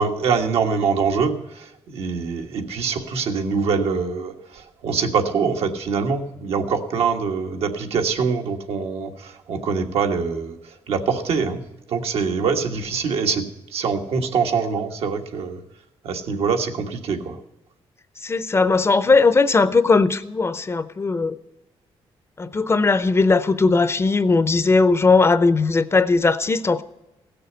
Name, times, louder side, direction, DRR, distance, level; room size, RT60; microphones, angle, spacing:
voice 1, 0.0-10.5 10.9-11.6 11.9-13.5 13.7-15.6 16.0-17.4, right 5 dB, 80° right, 1.5 m, -24 dB
voice 2, 18.2-21.4 22.4-26.8, left 3 dB, 25° left, 0.6 m, -18 dB
16.0 x 6.8 x 8.0 m
cardioid pair, 115°, 10 cm